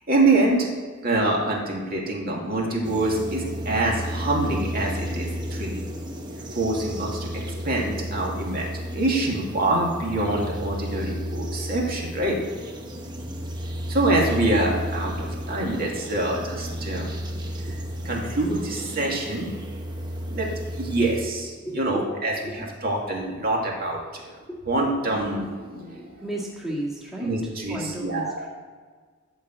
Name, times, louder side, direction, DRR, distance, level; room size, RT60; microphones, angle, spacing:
voice 1, 0.1-0.7 1.0-5.8 6.5-12.4 13.9-17.1 17.5-19.5 20.1-20.5 20.8-24.0 24.7-26.2 27.2-28.4, right 2 dB, 45° right, -2 dB, 2.4 m, -25 dB
sound 1, 2.8-21.3, equal, 20° right, 1.0 m, -33 dB
voice 2, 21.6-22.1 22.4-22.6 24.5-24.6 25.9-27.3 27.7-28.5, right 1 dB, ahead, -5 dB, 1.8 m, -33 dB
13.5 x 4.7 x 8.0 m, 1.5 s
head